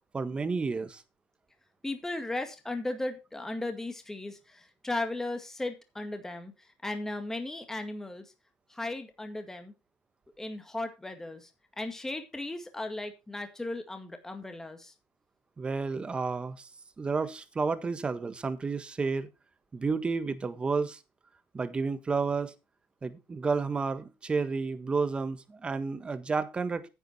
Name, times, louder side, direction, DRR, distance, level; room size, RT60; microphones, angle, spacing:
voice 1, 0.1-1.0 15.6-16.7 17.0-19.3 19.7-21.0 21.5-22.5 23.0-26.9, right 4 dB, 25° right, 1.5 m, -31 dB
voice 2, 1.8-6.5 6.8-8.2 8.7-9.7 10.4-11.5 11.8-14.9, left 2 dB, 10° left, 2.0 m, -36 dB
10.0 x 9.1 x 4.3 m
supercardioid pair, 95°, 5 cm